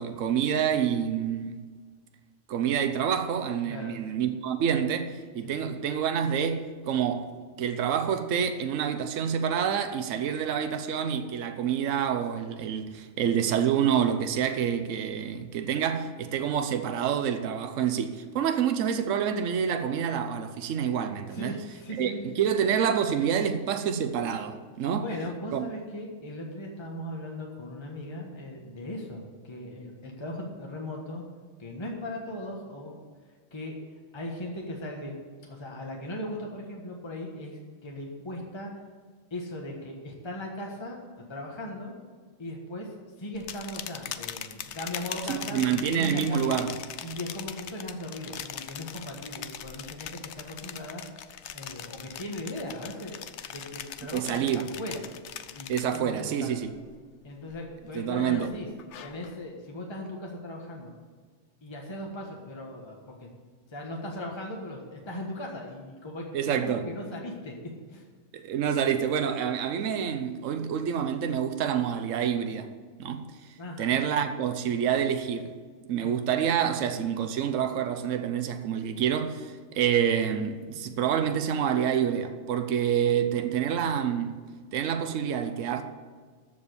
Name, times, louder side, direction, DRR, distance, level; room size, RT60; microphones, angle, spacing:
voice 1, 0.0-1.7 2.5-7.3 7.6-21.6 22.0-25.1 25.5-25.7 45.3-46.7 54.1-54.7 55.7-56.7 57.9-58.5 66.3-66.8 68.3-72.7 73.0-73.2 73.8-75.5 75.9-84.4 84.7-85.8, right 8 dB, 70° right, 1.1 m, -27 dB
voice 2, 3.6-4.0 5.4-5.7 21.3-22.2 24.8-31.2 31.6-32.9 33.5-33.8 34.1-35.2 35.5-38.7 39.3-41.9 42.4-46.6 47.0-51.0 51.5-53.1 53.5-55.0 55.5-56.5 57.2-58.7 59.0-60.9 61.6-63.3 63.7-66.2 66.6-67.6 67.9-68.0 73.6-73.9 76.0-76.4, left 1 dB, 20° left, 1.4 m, -38 dB
sound 1, 43.3-56.3 56.7-57.1 57.5-59.4, left 9 dB, 65° left, 0.9 m, -41 dB
14.0 x 5.2 x 8.2 m
omnidirectional pair, 1.4 m